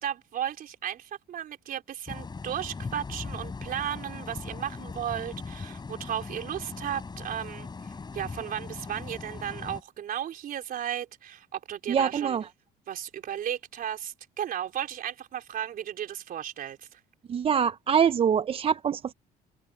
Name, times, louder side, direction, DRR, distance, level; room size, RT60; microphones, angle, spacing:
voice 1, 0.0-12.4 12.9-17.0, right 10 dB, 60° right, 4.1 m, -35 dB
sound 1, 2.1-9.8, left 4 dB, 25° left, 6.3 m, -39 dB
voice 2, 11.9-12.5 17.3-19.1, right 7 dB, 35° right, 0.5 m, -24 dB
cardioid pair, 110°, 17 cm